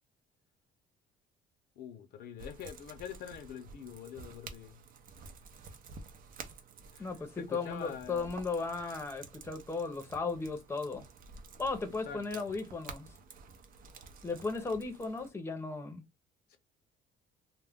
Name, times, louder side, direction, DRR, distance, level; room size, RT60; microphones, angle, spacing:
voice 1, 1.8-4.8 6.9-7.1 7.4-8.3 12.0-12.5 16.5-16.6, left 8 dB, 70° left, 0.6 m, -45 dB
sound 1, 2.4-15.3, right 4 dB, 60° right, 0.6 m, -51 dB
voice 2, 7.0-11.0 11.6-13.1 14.2-16.0, left 4 dB, 15° left, 0.7 m, -36 dB
2.3 x 2.1 x 3.4 m
cardioid pair, 110°, 17 cm